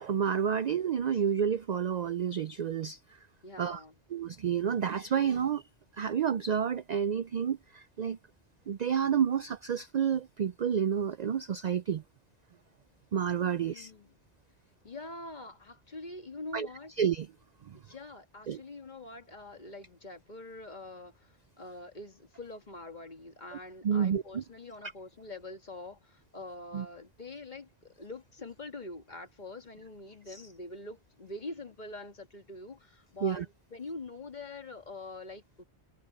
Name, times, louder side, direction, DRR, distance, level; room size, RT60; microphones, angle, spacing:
voice 1, 0.0-3.2 3.6-3.8 4.1-5.6 6.0-8.2 8.7-12.0 13.1-13.9 16.5-16.7 17.0-17.3 17.6-17.8 18.5-18.6 23.8-24.4 26.7-26.9 30.3-30.4 33.2-33.5, right 8 dB, 55° right, 0.5 m, -30 dB
voice 2, 3.4-4.0 13.5-14.1 14.8-16.9 17.7-35.6, left 2 dB, 45° left, 1.8 m, -45 dB
omnidirectional pair, 1.1 m